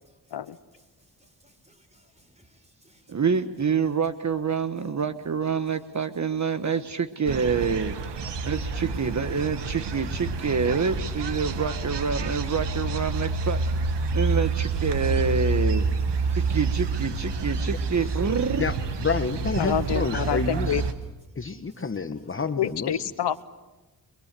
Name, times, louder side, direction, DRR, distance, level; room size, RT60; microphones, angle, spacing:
voice 1, 1.2-3.2 8.3-8.6 16.3-16.4 21.6-21.8, right 1 dB, 15° right, 5.0 m, -61 dB
voice 2, 3.1-8.0 8.4-13.6 14.1-15.9 16.3-18.7, right 6 dB, 45° right, 1.3 m, -27 dB
sound 1, 7.3-20.9, right 3 dB, 90° right, 1.8 m, -28 dB
voice 3, 18.6-20.8 21.4-23.0, left 5 dB, 30° left, 1.2 m, -29 dB
voice 4, 19.6-20.8 22.6-23.4, left 9 dB, 80° left, 1.0 m, -27 dB
30.0 x 22.5 x 7.6 m
cardioid pair, 85°, 41 cm